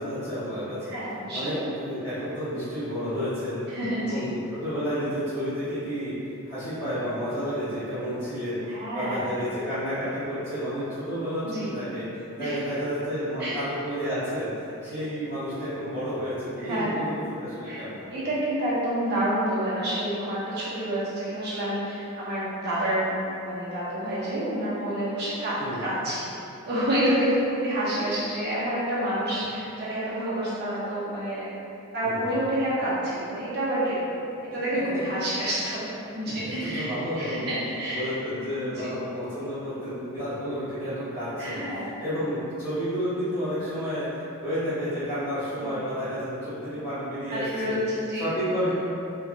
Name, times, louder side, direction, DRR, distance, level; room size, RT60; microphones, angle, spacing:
voice 1, 0.0-1.0 1.3-6.1 6.4-8.6 8.9-18.1 25.6-25.9 32.0-32.4 36.2-37.5 37.9-44.1 44.4-47.7 48.1-48.7, equal, 50° left, -17 dB, 1.1 m, -31 dB
voice 2, 0.9-1.6 3.7-4.3 8.7-9.3 11.4-11.7 12.4-12.6 13.4-13.5 16.6-17.0 17.6-17.8 18.1-26.2 26.6-31.5 31.9-38.1 38.6-39.0 41.4-41.9 45.6-45.8 47.3-48.3, right 1 dB, 50° right, -10 dB, 0.9 m, -28 dB
3.1 x 2.7 x 2.3 m, 2.7 s
head